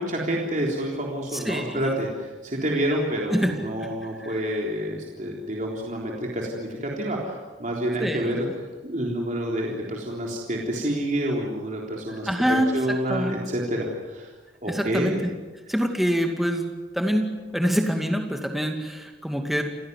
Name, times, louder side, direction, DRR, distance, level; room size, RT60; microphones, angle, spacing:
voice 1, 0.0-8.5 8.8-14.3 14.6-15.2, right 1 dB, 40° right, -2 dB, 3.7 m, -28 dB
voice 2, 1.3-1.8 3.3-3.5 3.8-3.9 4.2-4.4 8.0-8.4 12.3-12.8 13.1-13.4 14.7-15.3 15.7-16.7 16.9-19.6, equal, ahead, 3 dB, 2.3 m, -25 dB
29.0 x 16.5 x 9.6 m, 1.3 s
head